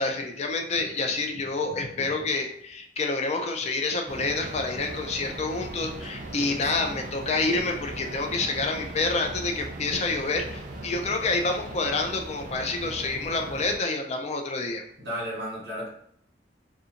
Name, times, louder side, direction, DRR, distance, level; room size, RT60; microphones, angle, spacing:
voice 1, 0.0-14.8, left 3 dB, 40° left, 4 dB, 0.4 m, -28 dB
sound 1, 4.1-13.8, right 2 dB, 50° right, 0.4 m, -39 dB
voice 2, 6.3-6.9 15.0-15.9, equal, 65° right, -6 dB, 1.1 m, -35 dB
2.5 x 2.3 x 2.8 m, 0.68 s
head